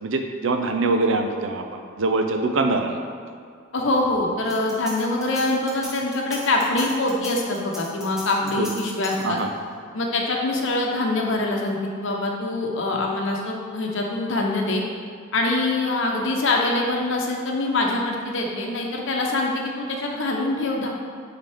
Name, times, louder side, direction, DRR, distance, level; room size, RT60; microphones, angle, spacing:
voice 1, 0.0-1.7 2.0-3.0 8.6-8.7 9.2-9.5, right 3 dB, 65° right, 5 dB, 0.6 m, -23 dB
voice 2, 3.7-9.4 9.9-14.8 15.3-20.9, left 2 dB, 65° left, 0 dB, 0.9 m, -24 dB
sound 1, 4.5-9.6, equal, 5° right, 1.0 m, -38 dB
8.9 x 3.8 x 3.5 m, 2.1 s
head